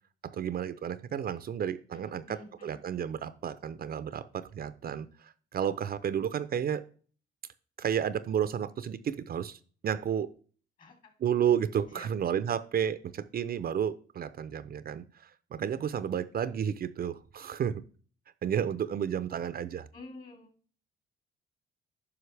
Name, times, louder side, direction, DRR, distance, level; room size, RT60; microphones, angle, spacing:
voice 1, 0.3-6.8 7.8-10.3 11.2-17.8 18.4-19.9, right 8 dB, 50° right, 13 dB, 0.6 m, -32 dB
voice 2, 1.9-2.8 10.8-10.9 11.9-12.1 19.9-20.5, left 2 dB, 45° left, 4 dB, 2.9 m, -49 dB
9.6 x 5.7 x 3.3 m, 0.41 s
cardioid pair, 90°, 20 cm